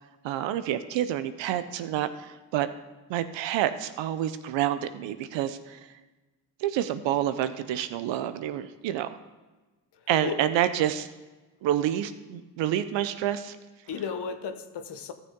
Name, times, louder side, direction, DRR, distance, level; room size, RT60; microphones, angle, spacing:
voice 1, 0.2-2.7 3.1-5.8 6.6-9.1 10.1-11.1 11.6-13.6, right 11 dB, 75° right, 11 dB, 0.8 m, -28 dB
voice 2, 9.9-10.4 13.9-15.1, left 6 dB, 60° left, 9 dB, 1.1 m, -35 dB
13.5 x 6.6 x 3.8 m, 1.2 s
supercardioid pair, 55°, 45 cm